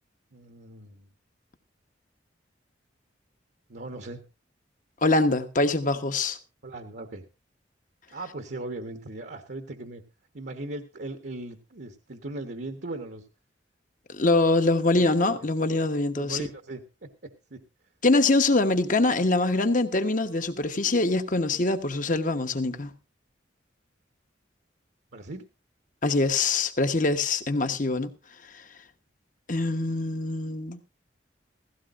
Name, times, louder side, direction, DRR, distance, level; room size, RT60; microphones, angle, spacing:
voice 1, 0.3-1.1 3.7-4.2 6.6-7.2 8.1-10.0 10.3-13.2 14.9-15.4 16.2-17.6 25.1-25.4, right 2 dB, 60° right, 1.2 m, -38 dB
voice 2, 5.0-6.4 14.1-16.5 18.0-22.9 26.0-28.1 29.5-30.8, left 2 dB, 45° left, 1.2 m, -24 dB
16.5 x 16.0 x 2.5 m
head